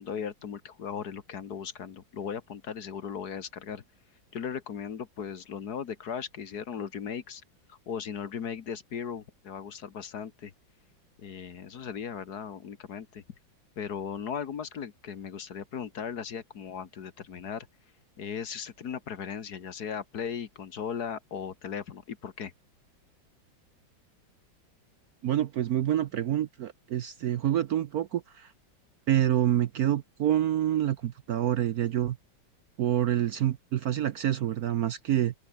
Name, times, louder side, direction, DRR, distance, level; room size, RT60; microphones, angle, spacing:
voice 1, 0.0-3.8 4.3-7.4 7.7-10.5 11.2-13.2 13.8-17.7 18.2-22.5, left 7 dB, 55° left, 1.8 m, -37 dB
voice 2, 25.2-28.5 29.1-32.2 32.8-35.3, right 12 dB, 65° right, 1.0 m, -27 dB
open air
omnidirectional pair, 2.1 m